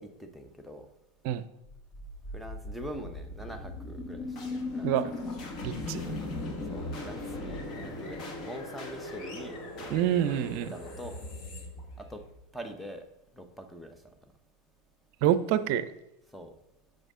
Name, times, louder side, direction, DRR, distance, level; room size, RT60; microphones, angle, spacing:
voice 1, 0.0-0.9 2.3-5.2 6.7-9.6 10.5-11.2 12.0-12.2 12.5-13.1 13.4-14.0 16.3-16.5, equal, ahead, 6 dB, 0.9 m, -43 dB
sound 1, 1.6-12.7, left 2 dB, 40° left, 1.7 m, -38 dB
voice 2, 4.8-5.1 5.6-6.1 9.9-10.7 15.2-15.9, right 11 dB, 60° right, 14 dB, 0.6 m, -27 dB
7.9 x 6.4 x 3.7 m, 0.89 s
supercardioid pair, 120°, 0 cm